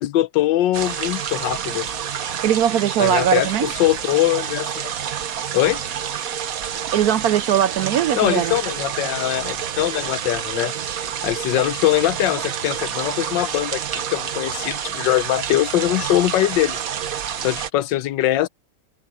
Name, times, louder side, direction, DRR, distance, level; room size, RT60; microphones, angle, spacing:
voice 1, 0.0-1.9 3.0-4.9 5.5-5.8 8.2-10.7 11.2-16.8 17.4-18.5, left 14 dB, 75° left, 1.3 m, -22 dB
sound 1, 0.7-17.7, right 9 dB, 55° right, 1.2 m, -28 dB
voice 2, 2.4-3.7 6.9-8.5, right 10 dB, 70° right, 0.9 m, -20 dB
omnidirectional pair, 2.0 m